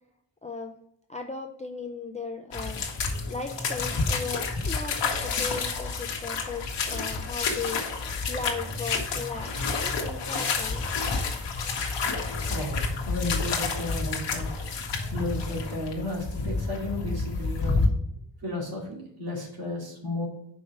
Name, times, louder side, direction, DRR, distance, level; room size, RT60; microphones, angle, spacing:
voice 1, 0.4-0.7 1.1-2.8 3.3-7.8 8.3-10.9, left 4 dB, 15° left, 4 dB, 0.4 m, -37 dB
sound 1, 2.5-17.9, left 4 dB, 65° left, 1.3 m, -29 dB
voice 2, 12.5-14.5 15.1-17.8 18.4-20.3, left 2 dB, 50° right, -2 dB, 2.4 m, -33 dB
5.5 x 4.6 x 6.0 m, 0.73 s
wide cardioid pair, 180°, 45 cm